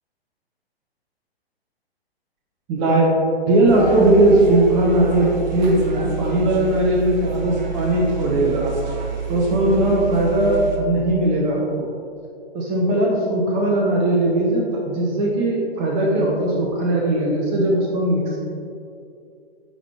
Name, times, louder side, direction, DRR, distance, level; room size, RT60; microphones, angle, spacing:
voice 1, 2.7-3.1 3.5-8.7 9.3-11.6 12.5-18.4, right 1 dB, 25° right, -2 dB, 1.0 m, -19 dB
sound 1, 3.7-10.8, right 6 dB, 45° right, 1.1 m, -29 dB
10.0 x 5.9 x 3.3 m, 2.4 s
figure-of-eight pair, 120°, 31 cm